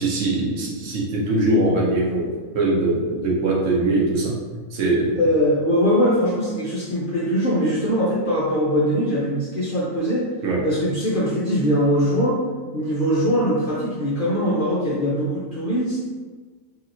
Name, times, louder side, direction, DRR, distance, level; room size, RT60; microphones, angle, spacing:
voice 1, 0.0-4.4 4.7-5.2 10.4-10.6, right 2 dB, 65° right, -3 dB, 1.0 m, -22 dB
voice 2, 5.1-10.2 10.6-12.4 12.7-16.1, equal, 55° left, -7 dB, 0.6 m, -21 dB
3.3 x 2.7 x 2.5 m, 1.4 s
omnidirectional pair, 1.5 m